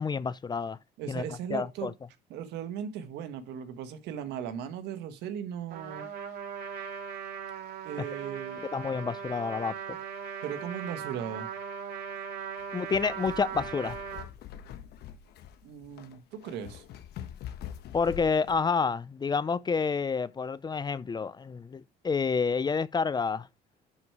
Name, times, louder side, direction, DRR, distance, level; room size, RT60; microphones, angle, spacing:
voice 1, 0.0-0.8 1.1-1.2 1.5-1.9 8.7-10.0 12.7-14.0 17.9-23.5, left 5 dB, 25° left, 0.5 m, -29 dB
voice 2, 1.0-1.9 2.3-6.1 7.8-8.6 10.4-11.5 15.6-16.8, right 8 dB, 85° right, 1.5 m, -37 dB
Trumpet, 5.7-14.3, right 7 dB, 70° right, 3.0 m, -39 dB
sound 1, 12.6-18.7, left 10 dB, 75° left, 1.2 m, -44 dB
11.0 x 4.8 x 4.8 m
cardioid pair, 110°, 17 cm